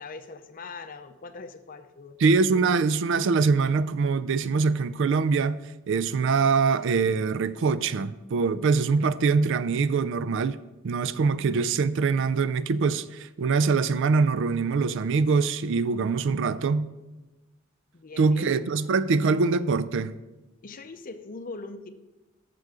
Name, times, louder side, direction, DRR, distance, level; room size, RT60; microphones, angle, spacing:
voice 1, 0.0-2.2 17.9-18.6 20.6-21.9, left 3 dB, 45° left, 0.6 m, -41 dB
voice 2, 2.2-5.6 5.9-10.6 10.8-16.9 18.2-20.1, right 4 dB, 65° right, 0.4 m, -23 dB
8.2 x 6.8 x 4.9 m
head